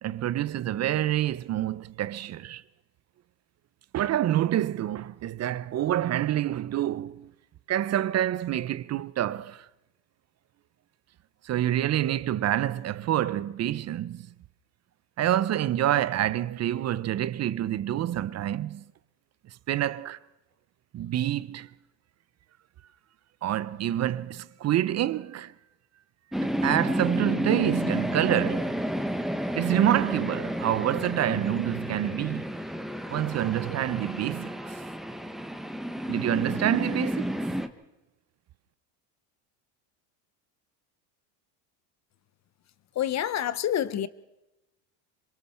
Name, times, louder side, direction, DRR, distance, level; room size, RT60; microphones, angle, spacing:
voice 1, 0.0-2.6 3.9-7.3 7.7-9.7 11.4-14.3 15.2-18.8 19.7-20.2 20.9-21.7 23.4-25.5 26.4-28.8 29.5-32.4 33.1-34.7 36.1-37.3, right 12 dB, 35° right, 0.6 m, -27 dB
sound 1, 26.3-37.7, equal, ahead, 1.1 m, -31 dB
voice 2, 42.9-44.1, left 10 dB, 35° left, 0.8 m, -27 dB
26.5 x 23.0 x 4.4 m
supercardioid pair, 105°, 48 cm